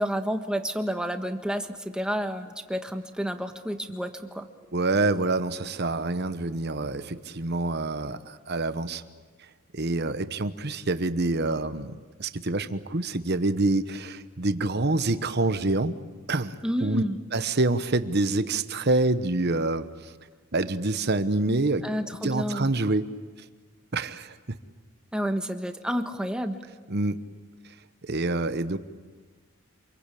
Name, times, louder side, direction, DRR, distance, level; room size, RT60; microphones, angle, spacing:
voice 1, 0.0-1.7 1.9-4.5 16.6-17.2 21.8-22.7 25.1-26.6, equal, 5° right, 6 dB, 1.4 m, -30 dB
voice 2, 4.7-9.0 9.7-16.0 16.3-17.0 17.3-20.1 20.5-21.9 22.2-23.1 23.9-24.6 26.9-27.2 28.0-28.8, right 2 dB, 50° right, 11 dB, 1.1 m, -26 dB
28.0 x 22.0 x 8.5 m, 1.4 s
head